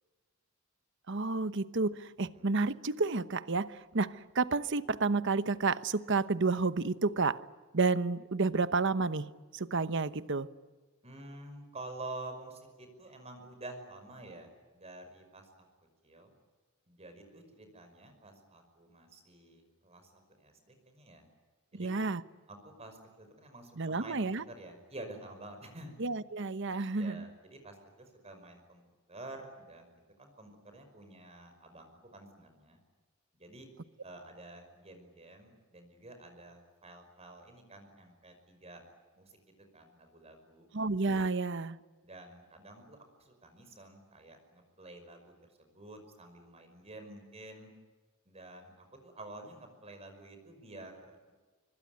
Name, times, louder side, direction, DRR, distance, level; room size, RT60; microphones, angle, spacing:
voice 1, 1.1-7.4 7.7-10.5 21.7-22.2 23.8-24.4 26.0-27.3 40.7-41.8, right 3 dB, 60° right, 1.0 m, -31 dB
voice 2, 11.0-15.7 16.0-16.3 16.9-21.2 21.7-22.1 22.5-25.9 26.9-28.8 29.1-29.9 30.2-32.8 33.4-33.7 34.0-38.8 39.2-40.7 42.0-47.7 48.3-51.3, right 2 dB, 30° right, 5.5 m, -49 dB
25.5 x 24.5 x 9.5 m
head